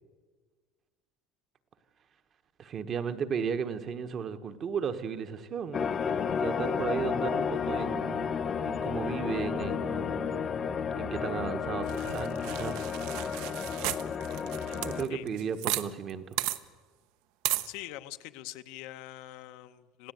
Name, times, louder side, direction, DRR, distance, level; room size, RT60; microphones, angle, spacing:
voice 1, 2.6-5.9 6.4-8.4 8.6-10.5 11.0-12.9 14.7-16.2, right 6 dB, 30° right, 9 dB, 1.1 m, -35 dB
sound 1, 5.7-15.1, left 6 dB, 25° left, 0.9 m, -32 dB
sound 2, 11.9-16.1 16.4-16.6 17.4-17.7, right 15 dB, 60° right, 1.0 m, -34 dB
voice 2, 17.7-20.1, left 15 dB, 60° left, 10 dB, 1.0 m, -43 dB
26.5 x 16.0 x 9.2 m, 1.5 s
cardioid pair, 170°, 0 cm